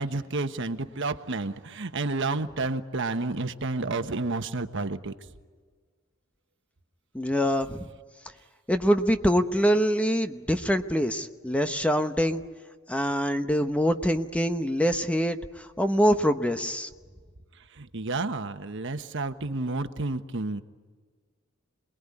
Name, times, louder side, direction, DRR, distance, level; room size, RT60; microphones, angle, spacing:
voice 1, 0.0-5.1 17.7-20.6, right 3 dB, 60° right, 9 dB, 1.3 m, -30 dB
voice 2, 7.1-7.8 8.7-12.4 12.9-16.9, equal, 5° left, 8 dB, 0.9 m, -24 dB
27.5 x 21.0 x 9.9 m, 1.5 s
head